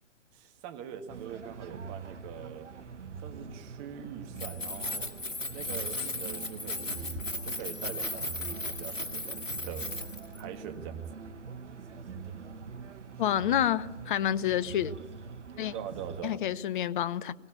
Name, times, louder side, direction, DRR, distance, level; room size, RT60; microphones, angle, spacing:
voice 1, 0.3-2.7 3.2-5.1 5.5-9.9 10.4-11.0 15.7-16.4, right 9 dB, 25° right, 1.9 m, -43 dB
sound 1, 1.1-16.2, right 5 dB, 65° right, 1.4 m, -44 dB
Keys jangling, 4.3-10.4, left 2 dB, 85° left, 2.0 m, -36 dB
voice 2, 13.2-14.9 15.6-15.7 16.2-17.3, left 11 dB, 40° left, 0.8 m, -28 dB
22.5 x 17.0 x 9.8 m
figure-of-eight pair, 125°, 38 cm